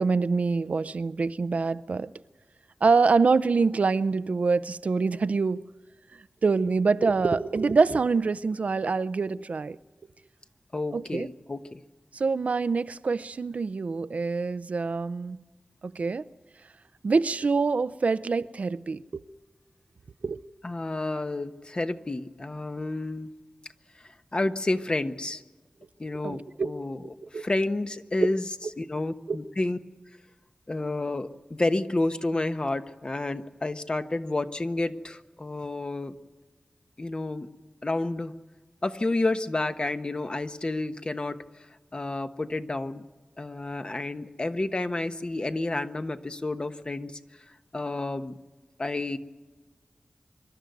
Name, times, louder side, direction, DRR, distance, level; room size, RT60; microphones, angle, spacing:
voice 1, 0.0-2.1 2.8-5.6 6.4-9.8 10.9-11.3 12.1-15.4 15.8-16.3 17.0-19.2 20.2-20.4 26.2-26.7 27.3-27.4 28.2-28.3 29.3-29.4, right 4 dB, 75° right, 0.6 m, -25 dB
voice 2, 10.7-11.8 20.6-23.3 24.3-25.4 26.0-27.0 27.3-28.5 28.8-29.8 30.7-36.1 37.0-37.5 37.8-38.3 38.8-41.4 41.9-43.0 43.4-47.2 47.7-48.3 48.8-49.2, left 2 dB, 40° left, 1.1 m, -30 dB
25.5 x 12.0 x 9.4 m
wide cardioid pair, 55°, 2 cm